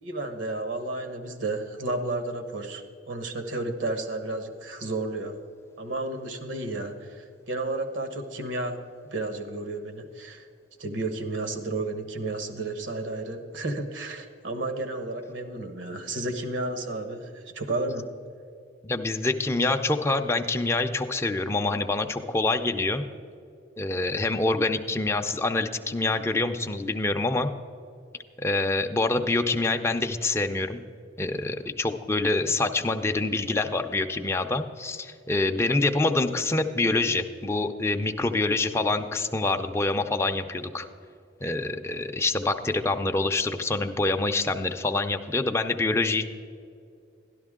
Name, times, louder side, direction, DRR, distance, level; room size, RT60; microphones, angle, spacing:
voice 1, 0.0-5.4 5.8-8.8 9.1-10.5 10.8-18.1, right 2 dB, 80° right, 7 dB, 1.1 m, -32 dB
voice 2, 18.8-23.0 23.8-27.5 28.4-30.8 31.2-40.9 41.4-46.3, left 2 dB, 15° left, 5 dB, 0.4 m, -26 dB
12.0 x 11.5 x 3.6 m, 2.4 s
head